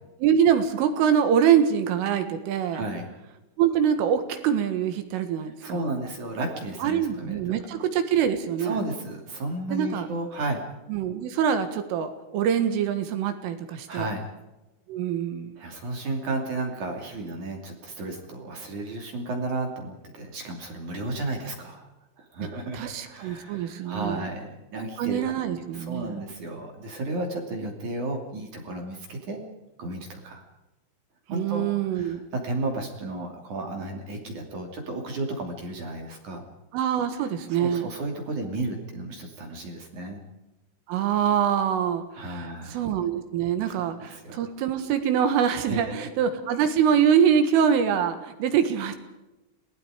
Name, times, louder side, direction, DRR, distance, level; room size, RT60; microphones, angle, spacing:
voice 1, 0.2-2.8 3.6-5.8 6.8-8.8 9.7-10.1 10.9-14.1 14.9-15.6 22.4-22.5 22.7-24.2 25.0-26.2 31.3-32.2 36.7-37.9 40.9-49.0, right 8 dB, 75° right, 8 dB, 4.0 m, -24 dB
voice 2, 2.7-3.1 5.6-7.4 8.6-10.6 13.9-14.3 15.6-21.9 22.2-29.4 29.8-30.4 31.3-31.6 31.9-36.4 37.5-40.2 42.2-42.8 43.8-44.4 45.7-46.1, right 2 dB, 45° right, 2 dB, 3.6 m, -33 dB
28.5 x 19.0 x 5.0 m, 1.0 s
omnidirectional pair, 6.0 m